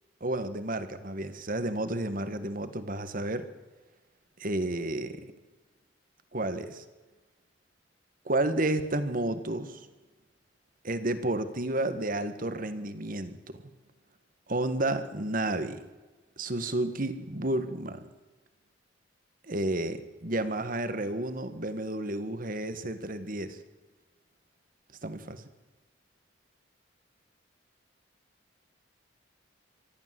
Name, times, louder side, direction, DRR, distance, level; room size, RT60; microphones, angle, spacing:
voice 1, 0.2-3.5 4.4-5.3 6.3-6.8 8.3-9.8 10.8-13.6 14.5-15.8 16.4-18.0 19.5-23.6 25.0-25.4, right 1 dB, 50° right, 11 dB, 1.7 m, -31 dB
24.0 x 14.0 x 7.7 m, 1.2 s
head